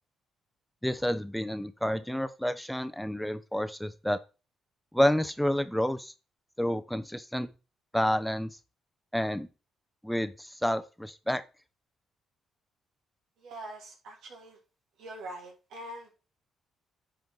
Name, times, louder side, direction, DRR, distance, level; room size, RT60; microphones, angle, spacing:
voice 1, 0.8-4.2 4.9-6.1 6.6-7.5 7.9-8.5 9.1-9.5 10.0-11.4, equal, 5° left, 10 dB, 0.7 m, -29 dB
voice 2, 13.4-14.6 15.0-16.1, right 1 dB, 80° right, 0 dB, 3.1 m, -43 dB
10.5 x 4.6 x 3.9 m, 0.31 s
cardioid pair, 90°, 0 cm